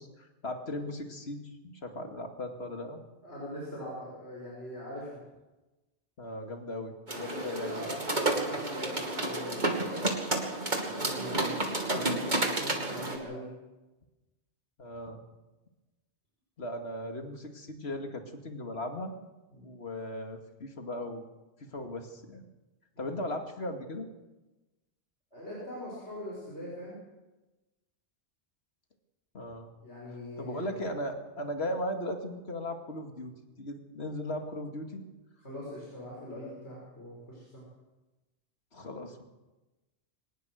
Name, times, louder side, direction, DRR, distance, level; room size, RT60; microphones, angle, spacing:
voice 1, 0.0-3.0 6.2-7.8 14.8-15.2 16.6-19.1 19.6-21.2 21.7-22.4 23.0-24.1 29.3-29.7 30.4-33.3 33.6-35.0 38.7-39.2, left 1 dB, 70° left, 4 dB, 2.5 m, -37 dB
voice 2, 3.2-5.2 7.2-10.1 10.8-11.5 11.9-13.5 19.5-19.6 25.3-27.0 29.8-30.8 35.4-37.6, left 1 dB, 85° left, -4 dB, 6.4 m, -42 dB
sound 1, 7.1-13.2, right 2 dB, 45° right, 2.9 m, -31 dB
24.0 x 19.5 x 6.5 m, 1.1 s
omnidirectional pair, 1.1 m